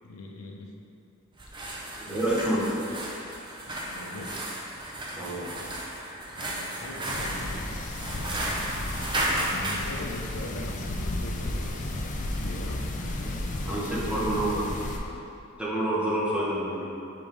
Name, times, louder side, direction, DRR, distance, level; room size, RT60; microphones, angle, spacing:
voice 1, 0.0-0.7 1.5-2.4 3.8-4.5 6.2-8.6 9.1-13.5 13.8-14.4, left 2 dB, 90° left, 1 dB, 0.6 m, -43 dB
sound 1, 1.3-9.9, right 1 dB, 20° right, 0.6 m, -34 dB
voice 2, 2.0-2.7 5.2-5.5 13.6-14.6 15.6-16.8, right 1 dB, 5° right, -8 dB, 1.0 m, -28 dB
sound 2, 7.1-15.0, left 1 dB, 35° left, 0.5 m, -33 dB
5.3 x 3.6 x 5.1 m, 2.6 s
head